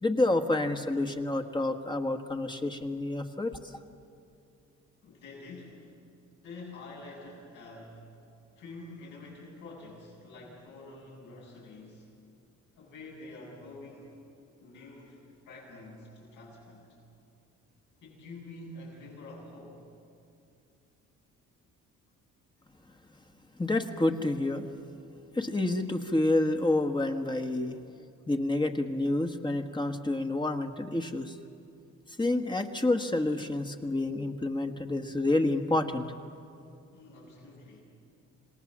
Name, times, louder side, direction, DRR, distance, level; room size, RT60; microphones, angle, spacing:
voice 1, 0.0-3.6 23.6-24.7 25.3-27.8 28.3-31.4 32.2-36.1, left 2 dB, 15° left, 5 dB, 1.4 m, -28 dB
voice 2, 5.0-5.9 6.4-8.1 8.6-12.1 12.8-14.2 14.6-15.2 15.4-16.9 18.0-19.8 36.9-37.8, left 2 dB, 85° left, -3 dB, 7.5 m, -47 dB
27.5 x 18.5 x 7.4 m, 2.5 s
cardioid pair, 90°, 30 cm